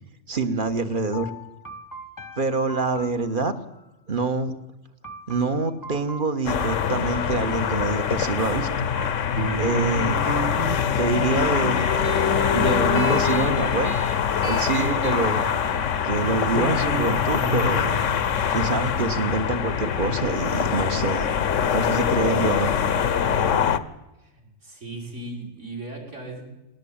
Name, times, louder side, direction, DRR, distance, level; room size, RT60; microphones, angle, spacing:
voice 1, 0.3-1.3 2.4-3.5 4.1-4.5 5.3-8.9 9.6-10.2 11.0-11.8 12.5-14.0 14.4-15.5 16.0-17.9 18.5-21.3 21.7-22.8, right 3 dB, 40° right, 10 dB, 1.6 m, -26 dB
sound 1, 1.1-3.9 5.0-8.0 9.0-11.1 11.6-12.2 12.6-13.3 13.6-14.3 14.7-15.3 15.7-18.2, left 1 dB, 15° left, 1.1 m, -42 dB
sound 2, 6.5-23.8, left 7 dB, 65° left, 1.2 m, -24 dB
sound 3, 9.4-20.5, right 2 dB, 20° right, 1.0 m, -34 dB
voice 2, 24.6-26.4, right 2 dB, 60° right, 2 dB, 5.8 m, -37 dB
19.5 x 18.5 x 8.8 m, 0.96 s
omnidirectional pair, 1.4 m